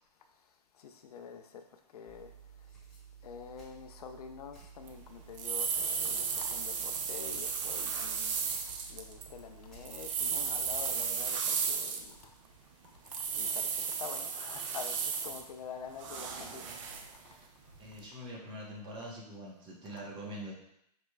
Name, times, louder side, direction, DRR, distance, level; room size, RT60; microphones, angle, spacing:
voice 1, 0.7-1.6 1.9-2.3 3.2-12.3 12.8-16.6 17.2-17.4 19.0-19.1 19.8-20.0, left 6 dB, 65° left, 0.4 m, -47 dB
sound 1, 2.1-11.2, right 6 dB, ahead, 1.4 m, -54 dB
sound 2, 4.9-5.0 5.4-9.3 9.7-12.2 13.1-15.4 16.0-17.1 17.7-17.8, right 6 dB, 50° right, 0.5 m, -34 dB
voice 2, 17.8-20.5, equal, 25° right, 1.0 m, -44 dB
5.0 x 3.0 x 2.2 m
hypercardioid pair, 125°, 21 cm